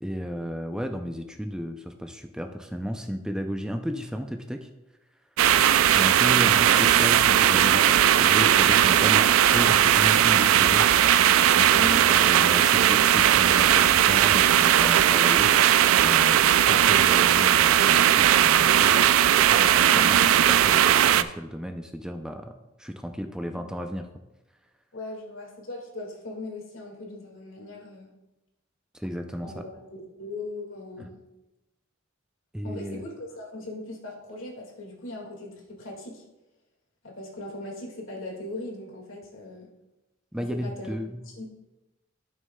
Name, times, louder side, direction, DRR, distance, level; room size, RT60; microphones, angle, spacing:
voice 1, 0.0-4.7 5.8-10.9 11.6-20.2 20.5-22.5 22.8-24.1 28.9-29.6 31.0-31.1 32.5-33.0 40.3-41.2, equal, 5° right, 5 dB, 0.4 m, -33 dB
sound 1, 5.4-21.2, right 10 dB, 85° right, 0.3 m, -18 dB
voice 2, 11.7-12.0 19.9-20.2 24.9-28.1 29.4-31.2 32.6-36.2 37.0-39.7 40.4-40.9 41.3-41.4, left 2 dB, 75° left, 0 dB, 1.9 m, -39 dB
13.0 x 6.2 x 2.2 m, 0.99 s
head